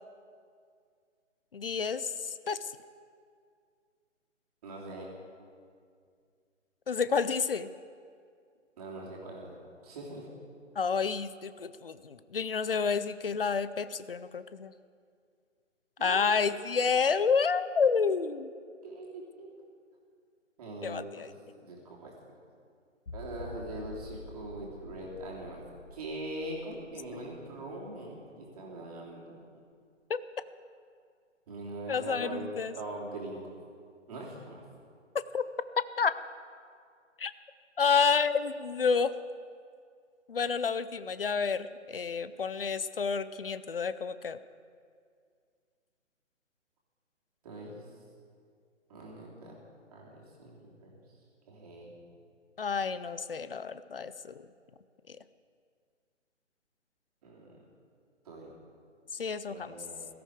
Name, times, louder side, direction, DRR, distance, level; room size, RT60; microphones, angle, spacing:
voice 1, 1.5-2.7 6.9-7.7 10.8-14.7 16.0-18.5 20.8-21.3 30.1-30.2 31.9-32.7 35.3-35.4 36.0-36.2 37.2-37.3 37.8-39.1 40.3-44.4 52.6-54.3 59.1-59.7, left 5 dB, 50° left, 14 dB, 0.5 m, -29 dB
voice 2, 4.6-5.1 8.8-10.3 16.0-16.4 18.8-19.5 20.6-21.3 21.6-22.1 23.1-25.6 25.9-29.4 31.5-33.6 34.1-34.6 47.4-47.8 48.9-49.6 49.9-51.0 51.5-52.0 57.2-57.5 58.2-58.5 59.5-60.1, right 1 dB, 30° right, -3 dB, 3.0 m, -42 dB
sound 1, 23.1-28.5 28.8-28.9 29.4-29.5, left 3 dB, 85° left, 1.1 m, -48 dB
17.5 x 14.0 x 4.7 m, 2.2 s
figure-of-eight pair, 140°, 38 cm